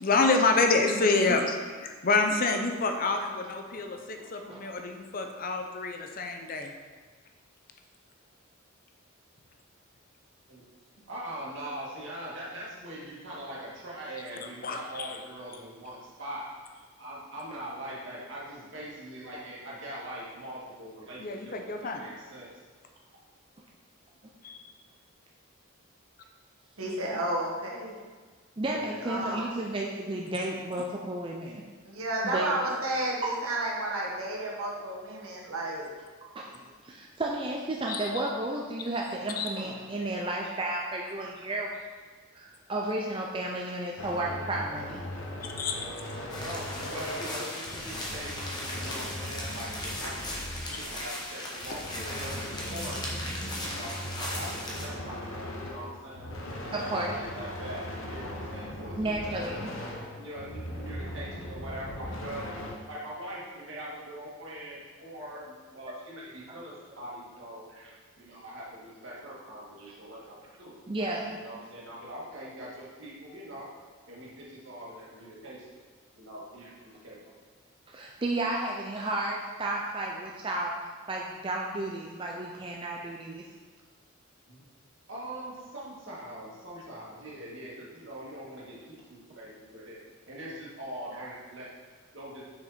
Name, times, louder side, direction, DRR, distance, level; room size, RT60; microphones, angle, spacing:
voice 1, 0.0-6.7 14.6-15.2 21.2-22.0 24.4-24.7 30.2-30.4 37.9-38.0 39.4-39.5 45.6-45.8 50.7-50.8, left 3 dB, 40° left, 4 dB, 0.6 m, -27 dB
voice 2, 0.8-1.3 26.8-27.9 29.0-29.5 31.8-35.9 67.8-67.9 69.8-69.9 91.1-91.4, right 1 dB, 85° right, -2 dB, 1.5 m, -32 dB
voice 3, 4.2-4.7 28.6-31.6 32.2-32.5 33.2-33.3 35.8-35.9 36.2-41.7 42.3-45.0 56.7-57.2 59.0-59.7 65.9-66.0 70.9-71.3 77.9-80.7 81.1-83.4, right 2 dB, 25° right, -1 dB, 0.5 m, -33 dB
voice 4, 11.1-16.5 17.0-22.5 28.6-29.1 45.9-46.0 46.4-50.3 50.7-53.1 53.7-59.1 60.1-62.5 62.9-67.6 68.2-70.8 71.2-73.7 74.1-75.8 76.2-77.2 84.5-84.6 85.1-90.0 90.3-91.7 92.1-92.4, right 1 dB, 60° right, -6 dB, 2.1 m, -42 dB
sound 1, 44.0-51.1 51.6-62.8, left 1 dB, 65° left, 0.9 m, -39 dB
sound 2, 46.3-54.9, left 1 dB, 20° left, 1.1 m, -37 dB
6.5 x 5.8 x 4.2 m, 1.4 s
head